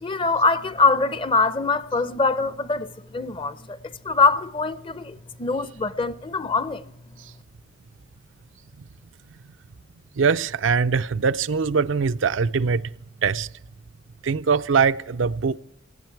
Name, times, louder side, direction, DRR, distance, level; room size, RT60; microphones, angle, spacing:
voice 1, 0.0-6.8, left 3 dB, 30° left, 0.6 m, -23 dB
voice 2, 10.2-12.9 13.2-13.5 14.2-15.6, right 5 dB, 90° right, 0.5 m, -22 dB
18.0 x 16.0 x 4.6 m
head